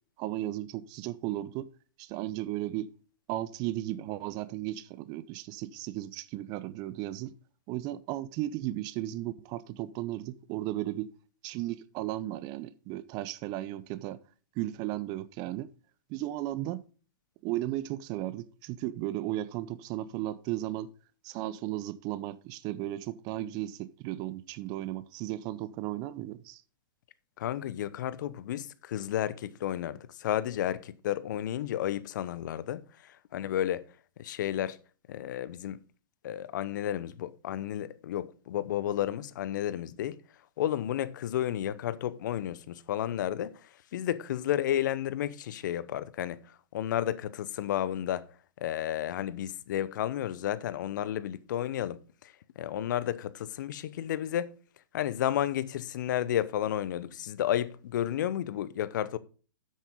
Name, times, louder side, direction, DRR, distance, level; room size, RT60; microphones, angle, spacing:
voice 1, 0.2-1.7 2.0-2.9 3.3-7.3 7.7-11.1 11.4-14.2 14.6-15.7 16.1-16.8 17.4-20.9 21.2-26.6, right 15 dB, 35° right, 0.7 m, -35 dB
voice 2, 27.4-33.9 34.2-34.8 35.1-35.8 36.2-40.2 40.6-48.3 48.6-54.5 54.9-59.2, left 11 dB, 60° left, 0.8 m, -32 dB
9.5 x 8.6 x 3.7 m
hypercardioid pair, 115°, 12 cm